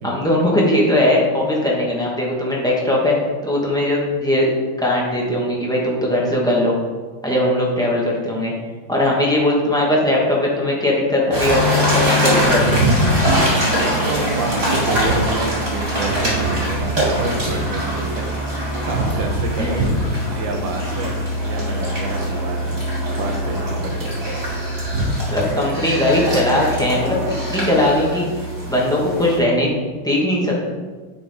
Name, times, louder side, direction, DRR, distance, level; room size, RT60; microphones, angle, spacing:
voice 1, 0.0-3.2 3.4-4.5 4.8-6.7 7.2-8.5 8.9-12.8 19.6-19.8 25.3-29.7 30.0-30.6, left 1 dB, 5° left, -4 dB, 1.0 m, -19 dB
sound 1, 11.3-29.4, equal, 30° right, 2.6 m, -22 dB
voice 2, 13.8-18.2 18.6-19.8 20.3-22.8 23.1-24.2, right 3 dB, 70° right, 3 dB, 1.5 m, -28 dB
9.1 x 4.7 x 3.5 m, 1.4 s
omnidirectional pair, 2.3 m